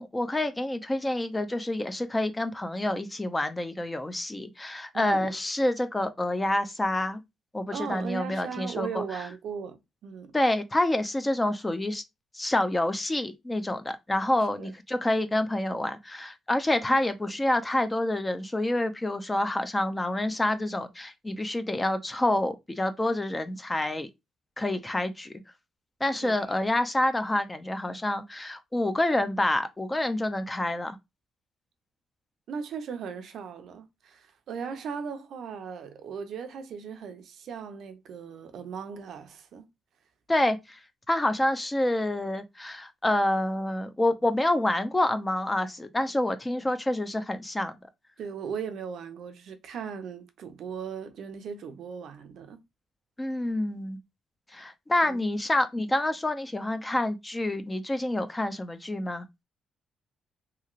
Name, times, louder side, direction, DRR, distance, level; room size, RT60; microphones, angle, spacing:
voice 1, 0.0-7.2 7.5-9.0 10.3-12.0 12.3-24.1 24.6-25.3 26.0-31.0 40.3-40.8 41.1-47.7 53.2-54.0 54.5-59.3, left 1 dB, 15° left, 0.5 m, -27 dB
voice 2, 4.9-5.4 7.7-10.3 14.6-14.7 26.2-26.4 32.5-39.7 48.2-52.6 55.0-55.3, right 6 dB, 70° right, 0.5 m, -38 dB
2.9 x 2.8 x 2.4 m
cardioid pair, 90°, 0 cm